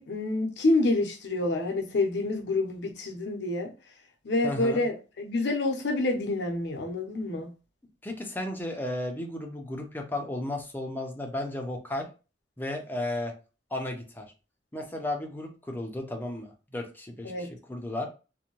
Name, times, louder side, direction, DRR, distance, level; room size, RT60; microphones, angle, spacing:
voice 1, 0.0-3.7 4.2-7.5 17.2-17.5, left 2 dB, 65° left, 0.6 m, -28 dB
voice 2, 4.4-4.8 8.0-12.1 12.6-13.3 13.7-14.3 14.7-18.1, left 1 dB, 10° left, 0.5 m, -34 dB
2.6 x 2.2 x 2.9 m
head